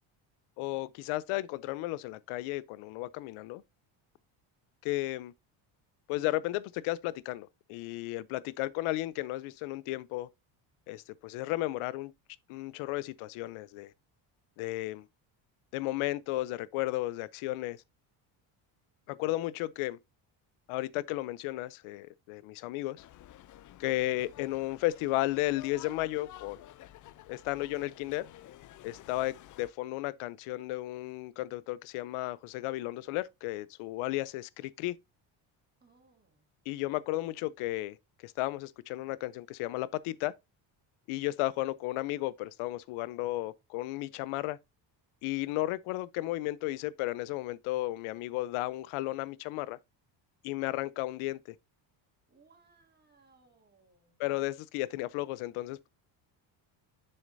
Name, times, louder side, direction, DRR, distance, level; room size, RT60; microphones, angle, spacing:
voice 1, 0.6-3.6 4.8-5.3 6.1-10.3 10.9-12.1 12.5-13.9 14.6-15.0 15.7-17.8 19.1-20.0 20.7-23.0 23.8-26.7 27.3-28.2 28.8-35.0 36.7-40.3 41.1-44.6 45.2-49.8 50.4-51.4 54.2-55.9, left 17 dB, 85° left, 0.7 m, -34 dB
sound 1, 23.0-29.7, left 13 dB, 40° left, 0.4 m, -52 dB
voice 2, 28.9-29.3 35.8-36.5 52.3-54.2, right 4 dB, 20° right, 2.5 m, -65 dB
7.2 x 6.5 x 2.6 m
cardioid pair, 125°, 49 cm